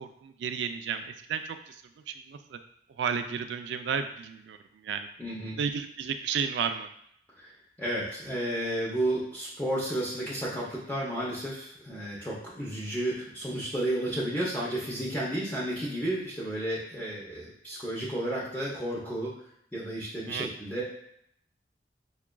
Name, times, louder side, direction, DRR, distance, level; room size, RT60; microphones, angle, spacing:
voice 1, 0.0-1.8 2.1-2.6 3.0-4.6 4.8-5.1 5.4-6.9 20.3-20.5, right 6 dB, 80° right, 8 dB, 0.3 m, -32 dB
voice 2, 5.2-5.6 7.4-7.5 7.8-19.4 19.7-20.8, right 1 dB, 10° left, -7 dB, 0.6 m, -32 dB
5.7 x 2.3 x 2.2 m, 0.71 s
head